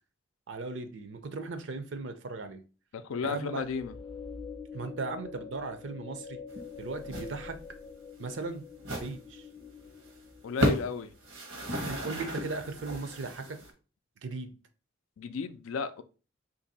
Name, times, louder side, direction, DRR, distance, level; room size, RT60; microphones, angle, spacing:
voice 1, 0.5-2.6 3.2-3.7 4.7-6.4 6.8-7.6 8.2-9.5 11.7-13.6 14.2-14.5, right 3 dB, 65° right, 0.5 m, -37 dB
voice 2, 2.9-3.9 10.4-11.1 15.2-16.0, left 5 dB, 85° left, 0.4 m, -33 dB
sound 1, 3.6-11.0, left 5 dB, 20° left, 0.4 m, -45 dB
sound 2, 6.5-6.7 7.0-7.3 7.6-7.7 8.2-8.3 8.8-9.1 9.6-9.7 9.9-10.1 10.5-10.9 11.2-13.7, equal, 90° right, 1.1 m, -33 dB
2.9 x 2.6 x 4.0 m
head